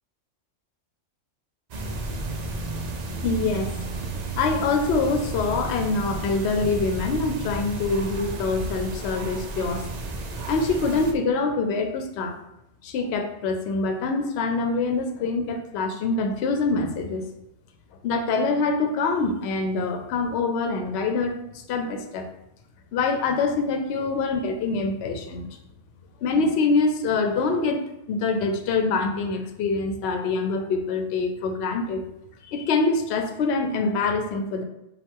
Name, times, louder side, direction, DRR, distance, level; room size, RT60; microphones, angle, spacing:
sound 1, 1.7-11.1, right 2 dB, 60° right, 0.4 m, -32 dB
voice 1, 3.2-9.9 10.5-12.3 12.8-17.3 18.0-22.3 22.9-25.5 26.2-27.8 28.1-32.0 32.5-34.6, left 3 dB, 65° left, 6 dB, 0.8 m, -25 dB
5.4 x 2.3 x 3.6 m, 0.85 s
omnidirectional pair, 1.3 m